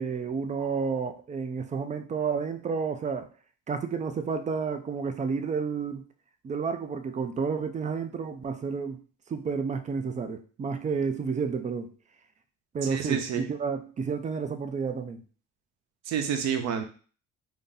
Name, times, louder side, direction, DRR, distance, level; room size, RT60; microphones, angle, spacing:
voice 1, 0.0-3.3 3.7-6.1 6.4-9.0 9.3-11.9 12.7-15.2, right 5 dB, 25° right, 8 dB, 0.4 m, -30 dB
voice 2, 12.8-13.5 16.1-16.8, right 8 dB, 65° right, 6 dB, 0.7 m, -29 dB
2.7 x 2.6 x 3.8 m, 0.38 s
cardioid pair, 120°, 30 cm